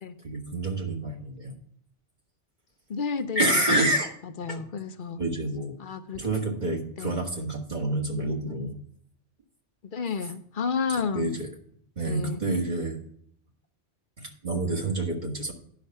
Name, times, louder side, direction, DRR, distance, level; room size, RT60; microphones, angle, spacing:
voice 1, 0.2-1.5 3.4-4.1 4.5-4.6 5.2-5.7 6.1-8.8 11.1-11.5 12.0-13.0 14.2-15.5, right 2 dB, 40° right, 0 dB, 1.9 m, -28 dB
voice 2, 2.9-3.9 4.4-5.2 5.8-6.2 7.0-7.2 9.9-11.3 12.0-12.4, left 5 dB, 50° left, 10 dB, 0.8 m, -31 dB
10.5 x 5.9 x 5.4 m, 0.66 s
omnidirectional pair, 1.2 m